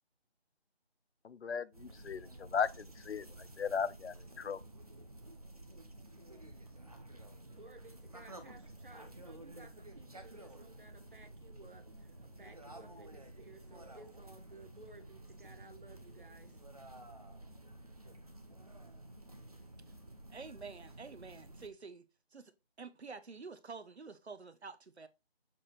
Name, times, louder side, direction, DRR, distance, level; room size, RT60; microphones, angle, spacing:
voice 1, 1.2-3.3 3.6-4.6, left 6 dB, 85° left, 0.6 m, -36 dB
sound 1, 1.7-21.7, right 1 dB, 35° right, 0.9 m, -52 dB
voice 2, 7.5-16.6, right 2 dB, 55° right, 1.3 m, -57 dB
voice 3, 20.3-22.0 22.3-25.1, right 4 dB, 85° right, 1.0 m, -49 dB
7.2 x 3.3 x 4.1 m
figure-of-eight pair, 180°, 32 cm